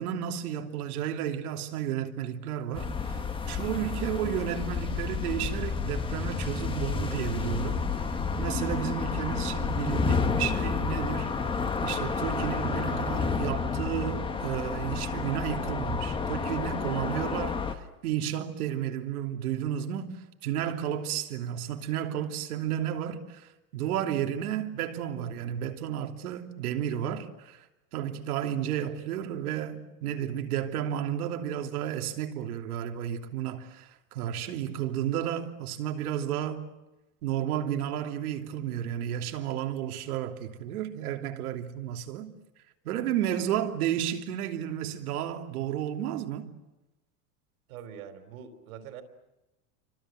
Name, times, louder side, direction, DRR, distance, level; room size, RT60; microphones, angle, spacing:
voice 1, 0.0-3.2 3.5-7.9 8.4-11.3 11.8-27.6 27.9-36.6 37.2-42.3 42.8-46.5, right 10 dB, 85° right, 3.2 m, -32 dB
sound 1, 2.7-17.7, left 5 dB, 10° left, 1.4 m, -30 dB
voice 2, 47.7-49.0, right 8 dB, 70° right, 4.3 m, -44 dB
29.5 x 25.5 x 7.8 m
supercardioid pair, 160°, 43 cm